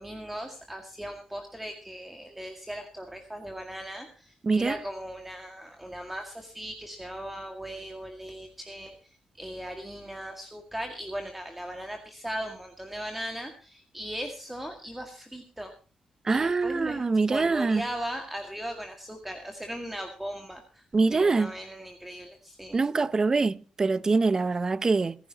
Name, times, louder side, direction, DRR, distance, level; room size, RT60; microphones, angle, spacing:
voice 1, 0.0-15.7 16.3-17.0 17.3-20.9 21.1-22.8, equal, 10° right, 1.9 m, -38 dB
voice 2, 4.4-4.8 16.2-17.8 20.9-21.5 22.7-25.2, right 4 dB, 30° right, 0.6 m, -24 dB
26.5 x 11.0 x 2.9 m
cardioid pair, 110°, 2 cm